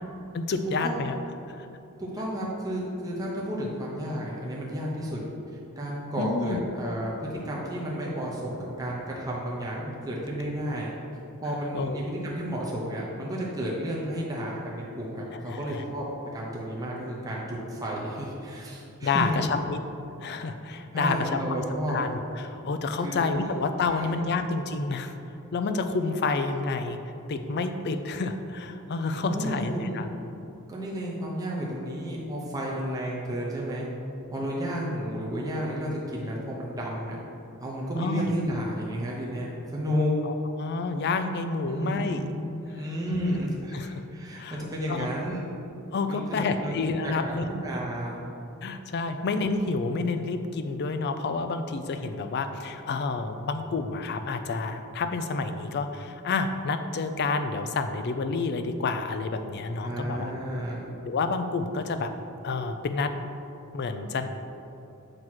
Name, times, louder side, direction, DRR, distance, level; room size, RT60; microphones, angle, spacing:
voice 1, 0.3-1.1 1.5-1.7 6.2-6.6 11.7-12.0 15.3-15.8 19.0-19.8 20.2-25.1 25.5-27.0 27.3-30.1 38.0-38.3 40.2-42.3 42.8-43.4 43.7-44.0 44.4-45.1 45.9-47.5 48.6-60.3 61.0-62.1 62.4-63.1 63.7-64.3, left 3 dB, 50° left, 8 dB, 0.4 m, -29 dB
voice 2, 2.0-5.2 5.8-10.9 11.4-16.0 16.3-19.4 20.9-22.0 23.0-23.5 23.9-24.1 29.1-30.0 30.7-33.8 34.3-37.2 37.6-40.1 41.6-45.5 46.1-46.7 47.0-48.2 59.8-60.8, equal, 15° right, -5 dB, 0.8 m, -32 dB
7.6 x 3.0 x 6.0 m, 2.7 s
head